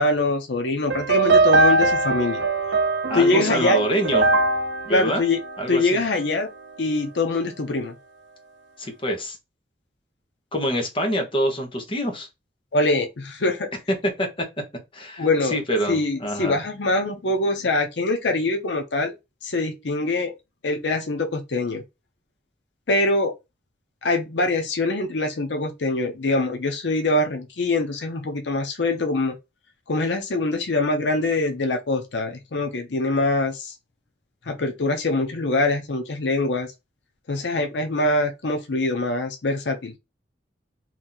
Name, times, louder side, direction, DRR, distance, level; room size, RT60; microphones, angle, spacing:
voice 1, 0.0-2.4 3.1-3.8 4.9-5.4 5.7-6.5 6.8-7.9 12.7-13.7 15.2-15.6 15.9-19.1 19.4-20.3 20.6-21.8 22.9-23.3 24.0-29.3 29.9-33.7 34.5-36.7 37.3-39.9, left 2 dB, 85° left, 0.7 m, -23 dB
sound 1, 0.9-6.2, right 3 dB, 90° right, 0.6 m, -21 dB
voice 2, 3.1-4.3 4.9-5.2 5.6-6.0 8.8-9.4 10.5-12.3 14.0-14.3 14.9-16.6, equal, 30° left, 1.1 m, -25 dB
3.0 x 2.7 x 3.9 m
head